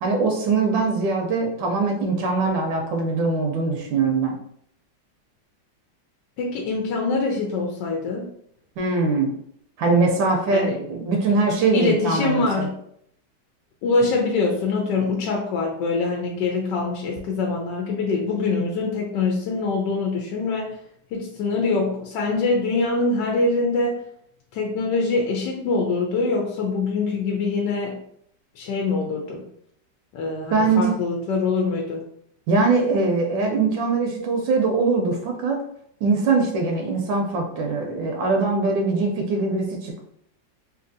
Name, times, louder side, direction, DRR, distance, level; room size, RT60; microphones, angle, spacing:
voice 1, 0.0-4.3 8.8-9.3 9.8-12.7 30.5-30.9 32.5-35.6 36.0-40.0, right 3 dB, 85° right, 2 dB, 1.3 m, -22 dB
voice 2, 6.4-8.3 10.5-10.8 11.7-12.8 13.8-20.8 21.1-24.0 24.5-28.0 28.6-29.4 30.1-32.0, left 3 dB, 75° left, 0 dB, 1.2 m, -24 dB
3.3 x 2.6 x 2.6 m, 0.69 s
omnidirectional pair, 2.0 m